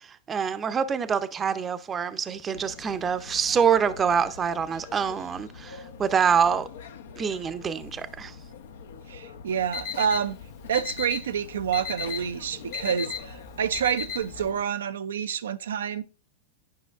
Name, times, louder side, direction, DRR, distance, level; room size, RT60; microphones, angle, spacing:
voice 1, 0.0-6.7 7.2-8.3, right 7 dB, 25° right, 0.6 m, -26 dB
sound 1, 2.5-14.6, left 6 dB, 70° left, 0.7 m, -45 dB
voice 2, 9.1-10.4 10.7-16.0, right 8 dB, 75° right, 0.3 m, -28 dB
Alarm, 9.5-14.5, left 7 dB, 45° left, 1.1 m, -36 dB
10.0 x 5.5 x 2.4 m
hypercardioid pair, 100°, 0 cm